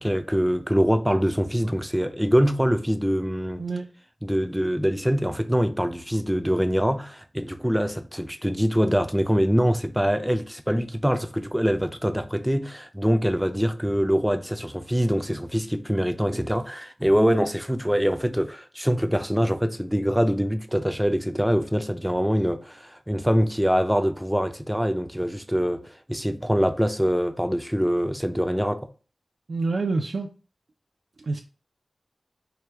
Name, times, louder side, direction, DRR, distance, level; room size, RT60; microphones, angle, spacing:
voice 1, 0.0-3.6 4.2-28.9, equal, 5° right, 0.4 m, -24 dB
voice 2, 29.5-30.3 31.2-31.4, right 3 dB, 70° right, 0.4 m, -27 dB
4.7 x 2.2 x 3.3 m
wide cardioid pair, 85°, 0 cm